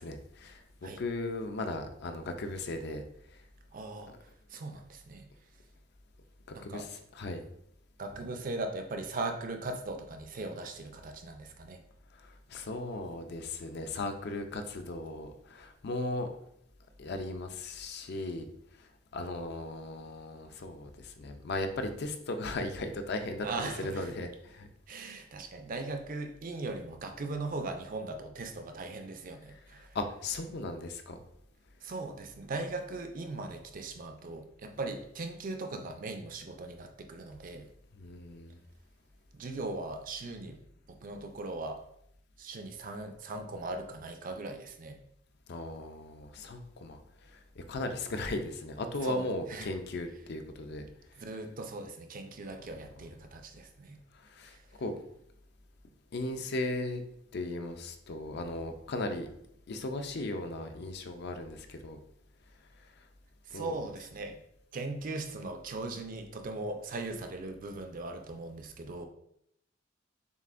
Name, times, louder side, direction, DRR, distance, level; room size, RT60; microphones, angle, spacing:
voice 1, 0.0-3.0 4.0-4.1 6.5-7.4 12.2-16.3 17.0-18.5 19.1-24.7 29.9-31.2 37.9-38.6 45.5-47.0 47.3-50.9 54.3-55.0 56.1-57.0 57.3-59.3 59.7-62.0 63.5-63.8, left 2 dB, 55° left, 7 dB, 0.5 m, -37 dB
voice 2, 3.7-4.1 4.5-5.3 6.5-6.9 8.0-11.8 23.4-24.2 24.9-30.0 31.8-37.7 39.3-40.6 40.9-41.8 42.4-45.0 49.0-49.7 51.2-54.0 54.5-54.6 63.5-64.4 64.7-69.1, right 2 dB, 45° right, 5 dB, 0.5 m, -39 dB
6.7 x 2.5 x 2.5 m, 0.73 s
head